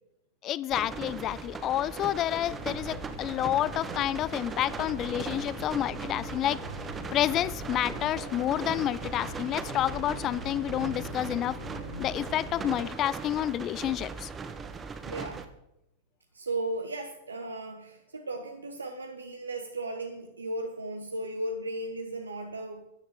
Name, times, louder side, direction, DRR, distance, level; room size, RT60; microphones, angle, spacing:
voice 1, 0.4-6.6 7.1-11.6 12.0-14.3, left 12 dB, 30° left, 0.5 m, -29 dB
sound 1, 0.7-15.5, right 5 dB, 20° right, 1.1 m, -39 dB
sound 2, 2.5-12.8, left 1 dB, 70° left, 4.3 m, -43 dB
voice 2, 15.0-15.5 16.3-22.8, right 2 dB, 75° right, 1.2 m, -36 dB
13.0 x 9.7 x 4.9 m
figure-of-eight pair, 90°, 0 cm